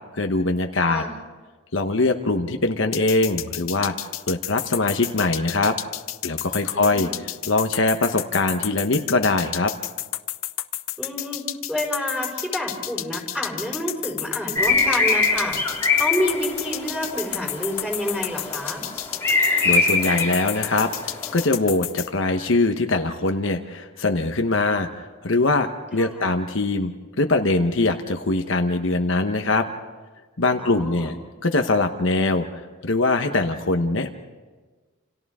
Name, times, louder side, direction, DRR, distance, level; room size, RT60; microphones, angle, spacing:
voice 1, 0.1-1.0 1.7-3.9 4.3-5.8 6.2-9.7 19.3-29.7 30.4-31.2 31.4-32.5 32.8-34.2, left 2 dB, 70° left, 6 dB, 1.1 m, -22 dB
sound 1, 2.9-22.1, left 15 dB, 85° left, 0.7 m, -30 dB
voice 2, 6.7-7.3 11.0-15.6 15.9-18.8 26.0-26.3 30.6-31.1, equal, 5° right, 0 dB, 5.0 m, -29 dB
sound 2, 14.6-21.5, left 3 dB, 10° left, 2.9 m, -24 dB
29.0 x 28.5 x 3.7 m, 1.3 s
head